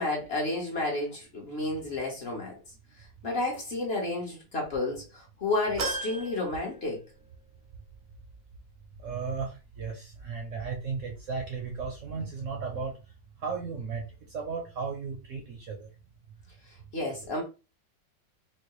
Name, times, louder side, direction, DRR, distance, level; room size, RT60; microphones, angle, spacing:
voice 1, 0.0-2.5 3.2-7.0 16.9-17.4, left 2 dB, 40° left, 1.0 m, -31 dB
sound 1, 5.8-7.4 7.8-7.9 9.2-9.3, right 3 dB, 90° right, 0.5 m, -36 dB
voice 2, 9.0-12.9 13.4-15.9, right 5 dB, 60° right, 0.8 m, -35 dB
4.5 x 2.1 x 3.0 m
omnidirectional pair, 2.0 m